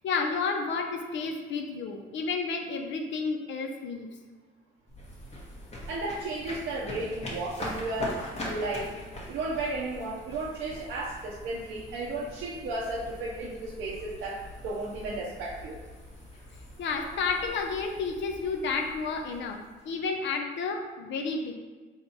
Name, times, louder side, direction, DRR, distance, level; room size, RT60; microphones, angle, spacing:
voice 1, 0.0-4.1 16.8-21.5, left 4 dB, 65° left, 3 dB, 0.5 m, -31 dB
sound 1, 4.9-20.0, left 1 dB, 35° left, 1.1 m, -42 dB
voice 2, 5.9-8.9 9.3-15.8, right 2 dB, 80° right, -5 dB, 0.6 m, -34 dB
4.4 x 3.5 x 2.8 m, 1.4 s
cardioid pair, 90°, 20 cm